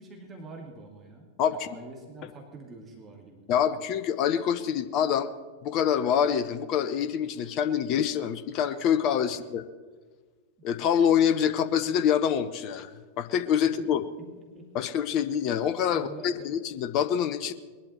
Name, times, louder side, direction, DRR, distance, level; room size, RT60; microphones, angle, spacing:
voice 1, 0.0-3.5 9.3-9.4 13.6-13.7 14.5-14.7 15.9-16.5, right 2 dB, 20° right, 1 dB, 2.4 m, -46 dB
voice 2, 3.5-5.3 5.6-9.6 10.6-12.9 13.2-14.0 14.7-17.5, left 8 dB, 40° left, 12 dB, 0.7 m, -26 dB
21.0 x 11.5 x 4.3 m, 1.4 s
figure-of-eight pair, 90°, 0 cm